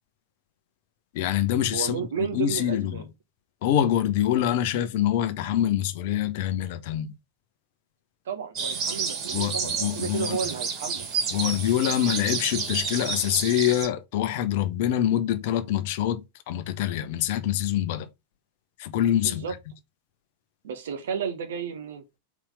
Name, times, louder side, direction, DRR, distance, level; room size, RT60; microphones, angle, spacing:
voice 1, 1.1-3.0 3.6-7.1 9.3-10.4 11.3-18.1 18.8-19.4, left 11 dB, 50° left, 0.9 m, -25 dB
voice 2, 1.7-3.0 8.2-11.1 19.1-19.5 20.6-22.0, right 7 dB, 60° right, 1.3 m, -32 dB
sound 1, 8.6-13.9, right 5 dB, 35° right, 2.7 m, -30 dB
4.8 x 4.4 x 5.2 m
figure-of-eight pair, 90°, 0 cm